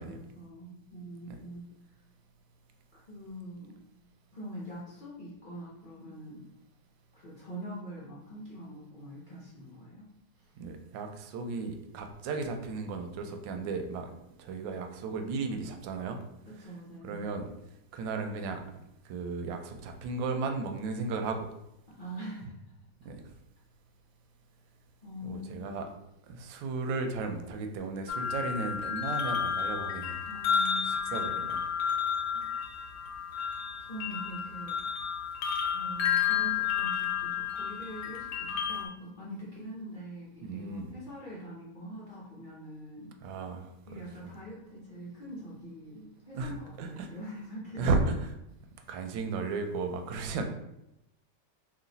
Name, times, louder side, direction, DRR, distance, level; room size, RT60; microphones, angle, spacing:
voice 1, 0.0-1.6 2.9-3.7 4.3-6.4 7.1-10.0 10.4-10.5 16.4-17.2 21.9-22.6 25.0-25.8 30.3-31.3 32.3-32.7 33.8-34.8 35.7-43.1 43.9-47.9, equal, 40° left, -8 dB, 0.7 m, -44 dB
voice 2, 10.6-14.1 14.4-16.2 17.0-17.5 17.9-18.6 19.0-21.5 23.0-23.2 25.2-25.9 26.3-30.2 30.8-31.6 40.4-40.9 43.2-44.0 46.3-47.1 47.8-48.1 48.9-50.4, right 3 dB, 90° right, 5 dB, 1.3 m, -34 dB
sound 1, 28.1-38.9, left 7 dB, 85° left, 1.3 m, -31 dB
3.1 x 2.7 x 3.9 m, 0.85 s
omnidirectional pair, 1.9 m